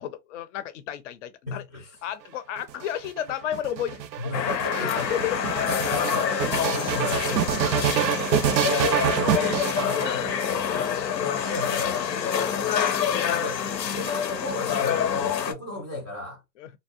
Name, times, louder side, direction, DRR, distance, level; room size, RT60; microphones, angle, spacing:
voice 1, 0.0-1.6 2.0-5.4 16.6-16.7, left 10 dB, 50° left, 0.5 m, -33 dB
voice 2, 1.5-1.9 4.2-5.1 5.6-8.3 8.5-10.9 11.2-12.0 13.3-13.6 13.9-16.4, left 2 dB, 15° right, 0.3 m, -34 dB
sound 1, 2.6-10.5 11.3-12.2, right 9 dB, 90° right, 0.6 m, -27 dB
sound 2, 4.3-15.5, left 8 dB, 90° left, 0.7 m, -27 dB
2.7 x 2.1 x 2.3 m
hypercardioid pair, 130°, 49 cm